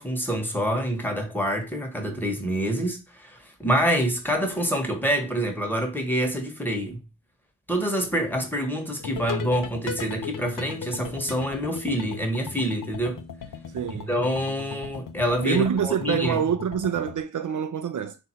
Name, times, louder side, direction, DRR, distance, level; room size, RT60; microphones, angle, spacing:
voice 1, 0.0-7.0 7.7-13.2 14.1-16.4, equal, 5° left, 1.1 m, -26 dB
sound 1, 9.0-17.2, left 7 dB, 90° left, 0.6 m, -38 dB
voice 2, 13.7-14.1 15.4-18.2, right 8 dB, 70° right, 0.5 m, -26 dB
3.7 x 2.6 x 4.3 m
wide cardioid pair, 65°, 31 cm